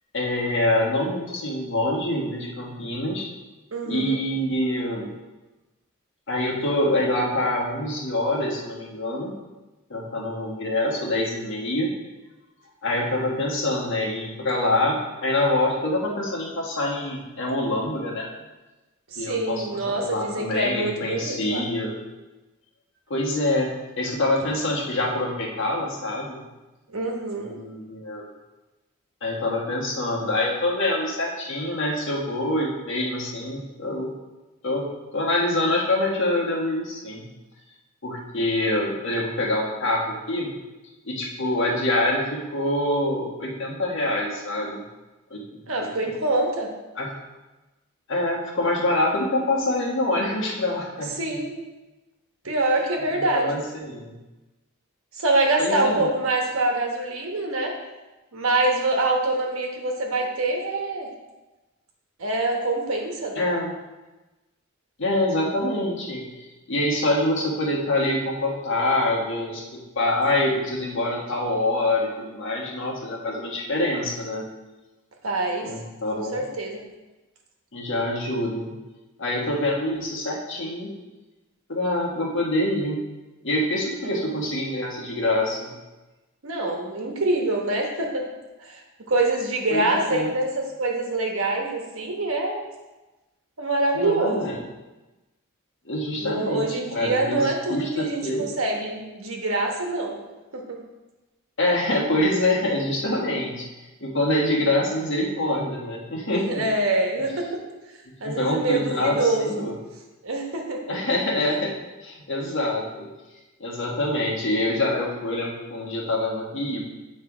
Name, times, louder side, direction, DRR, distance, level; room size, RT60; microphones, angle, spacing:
voice 1, 0.1-3.3 3.8-5.1 6.3-9.3 9.9-11.9 12.8-18.3 19.2-19.8 20.1-22.0 23.1-26.4 27.4-28.3 29.2-34.1 34.6-34.9 35.1-37.2 38.0-40.5 41.0-44.8 45.3-45.4 47.0-47.1 48.1-51.4 53.1-54.1 55.6-56.1 63.3-63.7 65.0-74.4 75.6-76.4 77.7-78.7 79.2-80.9 81.7-83.0 83.4-85.7 89.7-90.3 93.9-94.5 95.8-98.5 101.6-103.6 104.0-106.6 108.2-109.7 110.9-111.7 112.0-113.1 113.6-116.8, left 1 dB, 60° left, -2 dB, 1.4 m, -25 dB
voice 2, 3.7-4.2 19.1-21.6 26.9-27.5 45.7-46.7 51.0-51.5 52.4-53.6 55.1-57.7 58.3-61.1 62.2-63.5 75.2-75.7 76.1-76.8 84.0-84.2 86.4-88.3 88.6-92.6 93.6-94.5 96.2-100.2 100.5-100.6 106.3-107.6 108.2-109.7 110.2-111.0 111.4-111.5, right 2 dB, 70° right, 1 dB, 1.2 m, -25 dB
8.7 x 3.3 x 4.9 m, 1.1 s
head